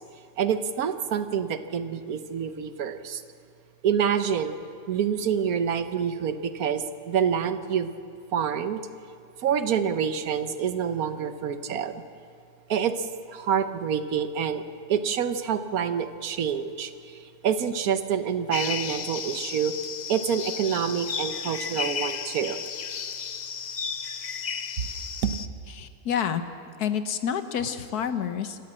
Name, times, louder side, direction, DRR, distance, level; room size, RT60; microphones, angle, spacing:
voice 1, 0.4-3.2 3.8-4.5 4.9-7.9 8.3-8.8 9.4-12.0 12.7-14.6 14.9-17.2 17.4-19.7 20.1-22.6 25.2-25.3, right 8 dB, 70° right, 10 dB, 1.4 m, -27 dB
sound 1, 18.5-25.5, left 6 dB, 55° left, 0.4 m, -33 dB
voice 2, 25.7-26.4 26.8-28.6, left 8 dB, 75° left, 10 dB, 1.6 m, -28 dB
26.5 x 14.0 x 7.7 m, 2.3 s
omnidirectional pair, 1.7 m